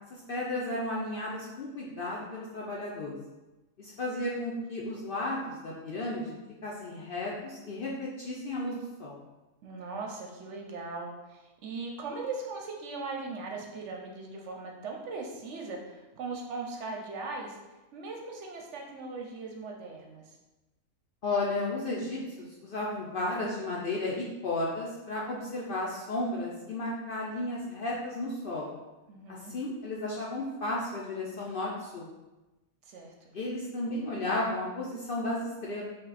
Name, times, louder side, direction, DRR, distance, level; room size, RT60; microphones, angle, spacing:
voice 1, 0.1-3.2 3.8-9.2 21.2-28.7 29.3-32.1 33.3-35.8, left 2 dB, 55° left, -4 dB, 0.6 m, -34 dB
voice 2, 9.6-17.6 17.9-20.4 29.1-29.5 32.9-33.1, right 3 dB, 65° right, 1 dB, 0.9 m, -39 dB
5.1 x 2.2 x 4.0 m, 1.1 s
omnidirectional pair, 1.4 m